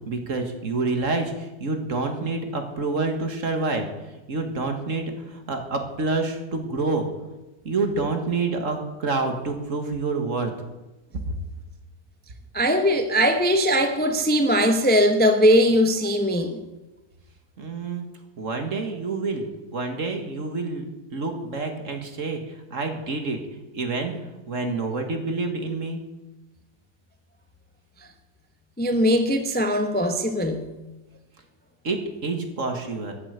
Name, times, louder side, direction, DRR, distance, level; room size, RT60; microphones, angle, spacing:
voice 1, 0.1-3.9 4.3-7.1 7.7-10.5 11.2-11.3 17.6-18.1 18.4-19.5 19.7-20.8 21.1-23.4 23.7-24.1 24.5-26.0 31.8-33.1, right 3 dB, 45° right, 5 dB, 1.9 m, -27 dB
voice 2, 12.5-16.6 28.8-30.7, equal, 10° left, 6 dB, 0.8 m, -20 dB
14.0 x 7.8 x 8.2 m, 1.1 s
omnidirectional pair, 1.9 m